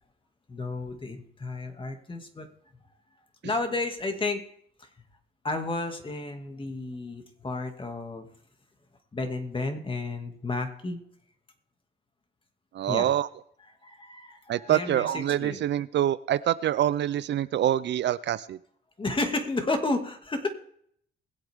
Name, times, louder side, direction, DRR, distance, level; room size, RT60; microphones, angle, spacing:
voice 1, 0.5-2.5 3.4-4.4 4.8-4.9 5.4-8.3 9.1-11.0 12.9-13.1 13.8-15.6 19.0-20.5, left 2 dB, 25° left, 5 dB, 2.3 m, -32 dB
voice 2, 12.7-13.3 14.5-18.6, right 11 dB, 60° right, 16 dB, 0.5 m, -25 dB
21.5 x 8.1 x 3.6 m, 0.66 s
cardioid pair, 90°, 20 cm